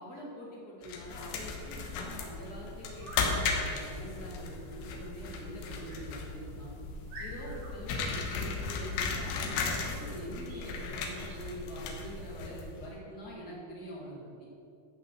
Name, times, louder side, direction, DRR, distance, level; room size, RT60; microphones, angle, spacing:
voice 1, 0.0-6.8 7.2-14.5, equal, 30° left, -4 dB, 1.9 m, -44 dB
sound 1, 0.8-12.9, left 4 dB, 80° left, 3.6 m, -36 dB
sound 2, 2.9-3.3 5.8-6.1 6.6-6.7 7.1-7.7 10.4-10.7 11.1-11.4, right 1 dB, 70° right, 5.7 m, -47 dB
13.5 x 5.9 x 7.6 m, 2.6 s
omnidirectional pair, 5.4 m